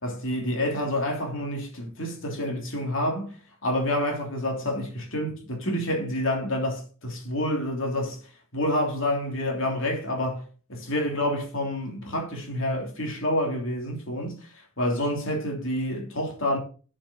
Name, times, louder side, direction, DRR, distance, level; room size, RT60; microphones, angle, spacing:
voice 1, 0.0-3.4 3.6-8.2 8.5-16.6, left 1 dB, 60° left, 3.3 m, -28 dB
7.4 x 7.4 x 6.1 m
head